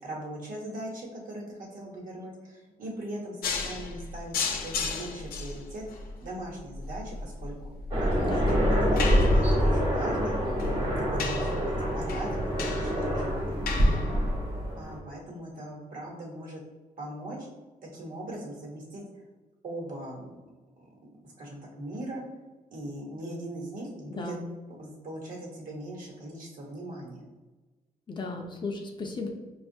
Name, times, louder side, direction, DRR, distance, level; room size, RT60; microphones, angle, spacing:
voice 1, 0.0-7.7 8.0-10.4 10.8-14.2 14.8-16.6 17.0-17.5 17.9-19.0 19.6-20.4 20.8-22.2 22.7-24.4 24.8-27.2, right 1 dB, 65° right, -2 dB, 1.1 m, -40 dB
sound 1, 3.4-14.7, left 4 dB, 80° left, 0.5 m, -35 dB
Aircraft, 7.9-15.0, equal, 35° right, 0.9 m, -26 dB
voice 2, 8.2-8.6 24.1-24.5 28.1-29.3, left 3 dB, 30° left, 2 dB, 0.5 m, -35 dB
5.1 x 2.3 x 2.6 m, 1.2 s
cardioid pair, 130°, 15 cm